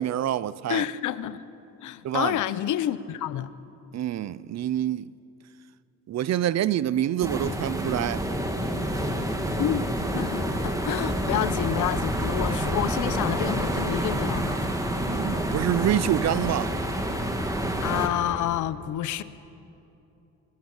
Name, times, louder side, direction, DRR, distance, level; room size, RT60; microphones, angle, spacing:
voice 1, 0.0-0.8 2.0-2.4 3.9-5.1 6.1-8.2 15.0-16.7, right 11 dB, 60° right, 0.7 m, -26 dB
voice 2, 0.7-1.4 1.8-3.5 9.5-14.6 17.8-19.2, left 12 dB, 80° left, 0.9 m, -29 dB
sound 1, 7.2-18.1, equal, 10° right, 2.7 m, -28 dB
25.5 x 19.5 x 7.4 m
cardioid pair, 90°, 30 cm